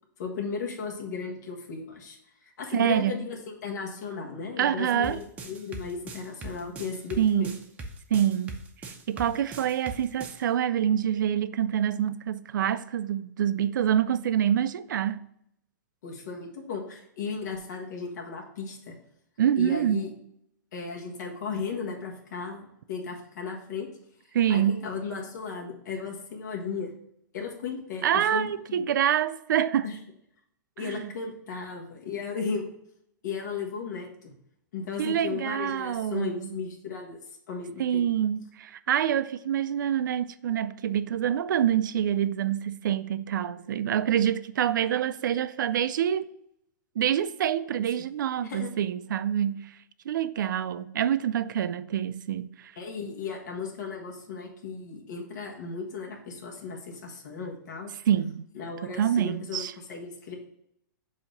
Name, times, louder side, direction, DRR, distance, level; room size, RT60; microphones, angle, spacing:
voice 1, 0.2-2.2 2.4-7.5 16.0-19.0 19.6-20.1 20.7-23.9 24.5-26.9 27.3-28.8 29.8-30.0 30.8-32.6 33.2-34.3 34.7-37.2 37.5-38.0 48.4-48.7 52.8-57.9 58.5-60.3, left 5 dB, 65° left, 1.4 m, -35 dB
voice 2, 2.7-3.1 4.6-5.2 7.2-7.5 8.1-15.2 19.4-20.1 24.3-24.8 28.0-29.9 30.8-31.1 35.0-36.5 37.8-46.3 47.0-49.8 50.1-52.7 58.1-58.5 58.8-59.7, right 10 dB, 75° right, 0.4 m, -26 dB
sound 1, 5.0-10.4, right 2 dB, 15° right, 0.6 m, -40 dB
7.1 x 2.8 x 5.2 m
hypercardioid pair, 150°, 10 cm